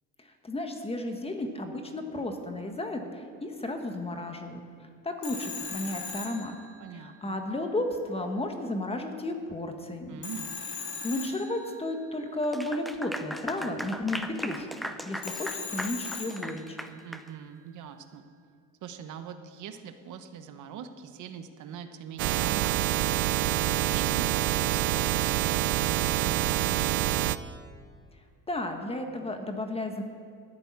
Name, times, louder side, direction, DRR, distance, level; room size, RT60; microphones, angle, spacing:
voice 1, 0.2-4.6 5.0-6.5 6.9-10.2 11.0-16.8 28.5-30.0, left 1 dB, 15° left, 5 dB, 1.5 m, -33 dB
Telephone, 5.2-7.2 10.2-12.0 15.2-16.9, left 5 dB, 70° left, 2.9 m, -39 dB
voice 2, 6.8-7.4 10.1-10.5 17.0-18.2 18.8-23.3 23.6-27.2, right 8 dB, 60° right, 8 dB, 1.0 m, -43 dB
Clapping / Applause, 12.4-17.3, equal, ahead, 0.6 m, -38 dB
sound 1, 22.2-27.4, right 14 dB, 75° right, 0.6 m, -26 dB
13.0 x 6.9 x 9.7 m, 2.2 s
cardioid pair, 110°, 35 cm